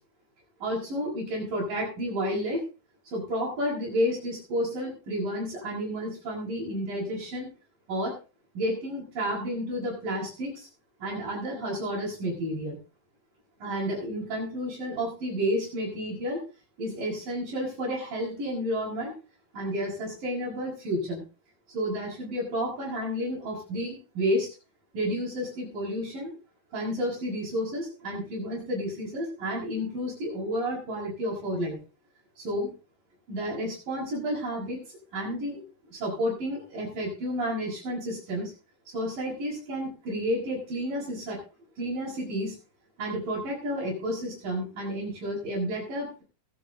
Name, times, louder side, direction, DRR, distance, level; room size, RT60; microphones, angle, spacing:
voice 1, 0.6-2.6 3.1-7.5 7.9-8.1 8.6-10.7 11.0-12.8 13.6-16.4 16.8-19.1 19.5-21.2 21.7-24.5 24.9-26.3 26.7-31.8 32.4-32.7 33.3-34.8 35.1-35.6 35.9-38.5 38.9-41.4 41.8-42.6 43.0-46.2, equal, 65° right, -6 dB, 7.4 m, -31 dB
21.5 x 8.8 x 3.9 m, 0.33 s
omnidirectional pair, 4.2 m